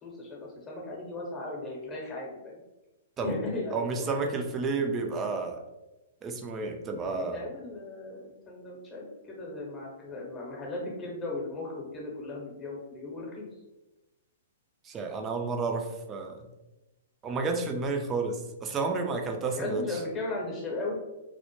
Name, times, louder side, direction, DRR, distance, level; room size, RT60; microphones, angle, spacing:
voice 1, 0.0-2.6 3.2-4.3 4.8-5.3 7.0-13.5 19.6-21.0, left 2 dB, 20° left, -2 dB, 0.8 m, -37 dB
voice 2, 3.7-5.6 6.2-7.5 14.8-16.5 17.2-20.0, right 3 dB, 25° right, 4 dB, 0.4 m, -31 dB
2.1 x 2.0 x 2.9 m, 1.0 s
figure-of-eight pair, 115°, 0 cm